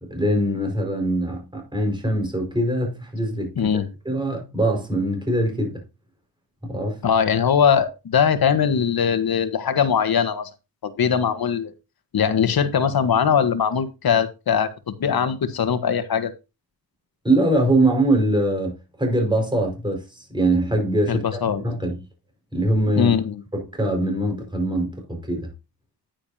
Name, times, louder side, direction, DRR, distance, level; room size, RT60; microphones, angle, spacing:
voice 1, 0.1-3.7 4.1-5.8 6.6-7.0 17.2-22.0 22.5-23.1 23.5-25.5, right 1 dB, 10° right, 5.3 m, -23 dB
voice 2, 3.6-3.9 7.0-10.5 10.8-11.7 12.1-16.3 21.1-21.6 23.0-23.4, left 7 dB, 60° left, 1.4 m, -21 dB
10.5 x 9.8 x 2.8 m
wide cardioid pair, 120°, 40 cm